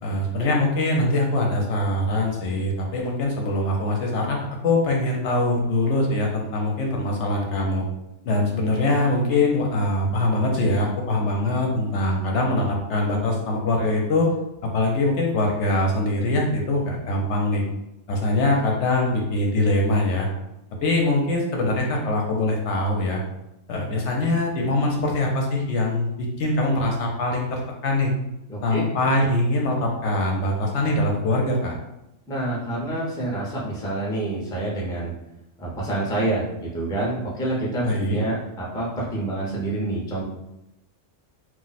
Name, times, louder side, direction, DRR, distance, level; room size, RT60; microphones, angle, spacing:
voice 1, 0.0-7.8 8.2-14.3 14.7-17.6 18.1-20.3 20.8-23.2 23.7-28.1 28.6-31.7 37.8-38.2, left 2 dB, 70° left, 0 dB, 0.8 m, -23 dB
voice 2, 28.5-28.8 32.3-35.1 35.6-40.2, right 2 dB, 5° left, -5 dB, 0.4 m, -27 dB
2.5 x 2.0 x 3.9 m, 0.89 s
omnidirectional pair, 1.4 m